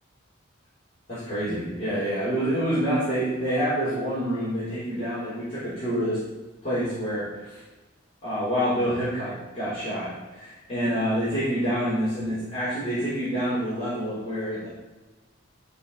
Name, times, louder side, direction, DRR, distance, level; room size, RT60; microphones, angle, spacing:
voice 1, 1.1-6.2 6.6-7.6 8.2-14.7, equal, 30° left, -12 dB, 3.9 m, -27 dB
12.0 x 5.3 x 5.8 m, 1.2 s
head